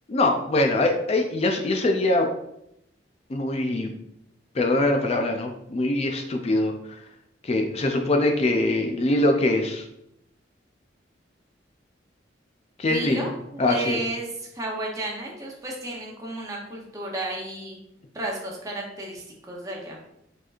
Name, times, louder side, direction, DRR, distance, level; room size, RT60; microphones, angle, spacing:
voice 1, 0.1-2.3 3.3-3.9 4.5-6.7 7.4-9.9 12.8-13.3 13.6-14.0, left 2 dB, 35° left, 3 dB, 0.4 m, -23 dB
voice 2, 12.8-13.3 13.6-14.3 14.5-17.8 18.1-20.0, right 2 dB, 20° right, -2 dB, 0.8 m, -32 dB
4.6 x 4.4 x 2.5 m, 0.78 s
head